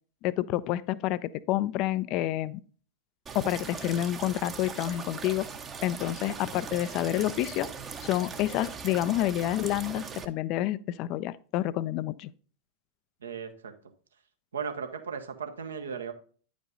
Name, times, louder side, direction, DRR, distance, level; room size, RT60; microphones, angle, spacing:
voice 1, 0.2-2.6 3.3-5.5 5.8-7.7 8.0-12.3, left 14 dB, 40° left, 0.4 m, -29 dB
sound 1, 3.3-10.3, right 5 dB, 20° right, 0.8 m, -40 dB
voice 2, 13.2-13.7 14.5-16.1, right 6 dB, 70° right, 1.0 m, -36 dB
9.7 x 5.2 x 3.8 m
figure-of-eight pair, 90°, 0 cm